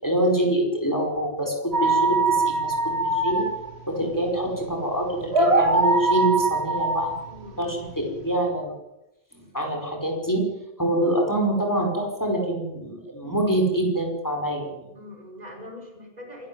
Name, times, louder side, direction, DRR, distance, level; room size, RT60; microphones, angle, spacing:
voice 1, 0.0-3.5 3.9-7.1 7.6-8.7 9.3-10.5 10.8-14.8, right 1 dB, 15° left, 2 dB, 4.9 m, -25 dB
sound 1, 1.7-8.3, right 3 dB, 80° right, 2.8 m, -23 dB
voice 2, 7.3-7.8 14.9-16.5, left 1 dB, 40° right, 2 dB, 5.4 m, -42 dB
27.0 x 12.0 x 9.5 m, 0.89 s
omnidirectional pair, 1.1 m